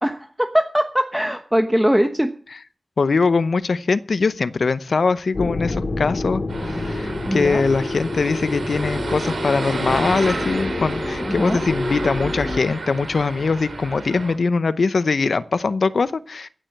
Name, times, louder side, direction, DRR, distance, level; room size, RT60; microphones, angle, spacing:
voice 1, 0.0-2.3 7.3-7.6 11.2-11.6, equal, 5° right, 1.1 m, -21 dB
voice 2, 3.0-16.5, left 4 dB, 80° left, 0.7 m, -22 dB
sound 1, 5.3-12.6, left 2 dB, 60° left, 2.0 m, -28 dB
sound 2, 6.5-14.3, right 3 dB, 80° right, 3.6 m, -31 dB
16.0 x 7.7 x 6.5 m
wide cardioid pair, 55°, 0 cm